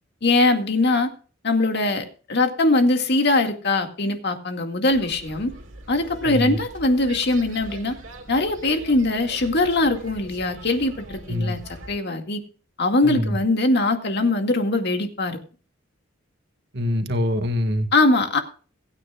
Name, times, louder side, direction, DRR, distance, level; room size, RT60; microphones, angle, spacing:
voice 1, 0.2-1.1 1.4-5.5 5.9-8.0 8.3-11.6 11.9-12.4 12.8-15.4 17.9-18.4, left 2 dB, 55° left, 5 dB, 2.1 m, -21 dB
sound 1, 4.9-11.9, right 1 dB, 70° right, 3.1 m, -42 dB
voice 2, 6.2-6.6 11.3-11.6 13.0-13.4 16.7-17.9, left 1 dB, 55° right, 7 dB, 1.8 m, -24 dB
22.5 x 9.6 x 2.4 m, 0.38 s
head